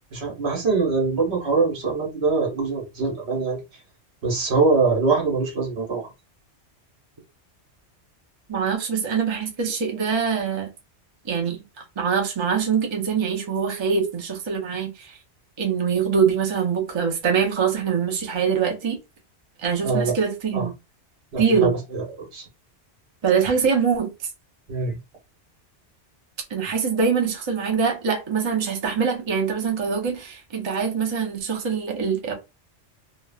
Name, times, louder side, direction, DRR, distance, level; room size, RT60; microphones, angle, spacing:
voice 1, 0.1-3.6 4.2-6.1 19.8-20.1 20.5-20.7 21.3-22.4 24.7-25.0, right 4 dB, 65° right, 1.3 m, -23 dB
voice 2, 8.5-10.7 11.2-11.6 12.0-15.2 15.6-19.0 19.6-20.7 21.4-21.8 23.2-24.1 26.5-32.3, right 6 dB, 35° right, 0.5 m, -23 dB
3.1 x 2.0 x 2.3 m
omnidirectional pair, 1.2 m